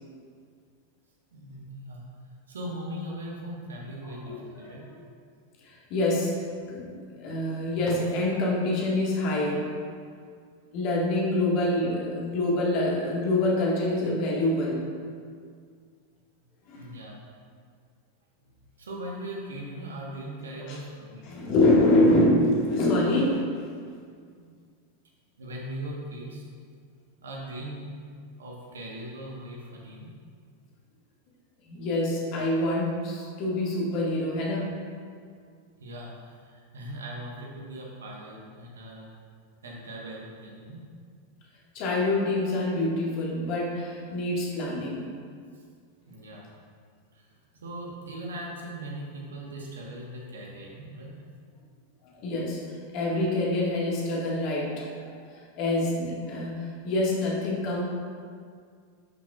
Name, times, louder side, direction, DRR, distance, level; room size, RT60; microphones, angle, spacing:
voice 1, 1.3-2.0 2.5-4.8 16.8-17.2 18.4-21.3 24.2-24.5 25.4-26.4 27.2-28.1 28.4-30.1 35.8-39.1 39.6-40.8 45.5-45.6 46.1-46.5 47.1-51.1, right 1 dB, 65° right, -2 dB, 1.4 m, -39 dB
voice 2, 4.2-5.0 5.6-6.4 6.7-6.9 7.1-9.7 10.7-14.9 16.7-17.0 20.7-20.8 21.3-23.4 31.7-34.8 41.7-45.1 52.2-52.6 52.9-55.1 55.6-57.8, left 1 dB, 40° left, -4 dB, 1.9 m, -26 dB
10.5 x 6.0 x 2.5 m, 2.1 s
figure-of-eight pair, 90°, 0 cm